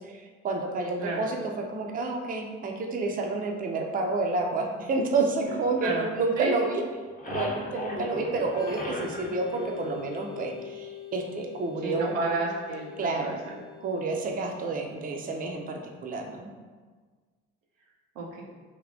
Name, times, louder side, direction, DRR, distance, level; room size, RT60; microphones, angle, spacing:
voice 1, 0.0-6.8 7.3-12.2 13.0-13.4 13.8-16.5, right 3 dB, 25° right, 2 dB, 0.5 m, -29 dB
sound 1, 5.4-6.6 6.9-10.6, left 1 dB, 20° left, 0.7 m, -38 dB
Organ, 8.5-16.0, left 11 dB, 65° left, 0.5 m, -44 dB
voice 2, 11.8-12.9 13.2-13.4 18.2-18.4, right 3 dB, 85° right, -2 dB, 0.6 m, -30 dB
3.3 x 2.4 x 2.5 m, 1.4 s
hypercardioid pair, 50°, 36 cm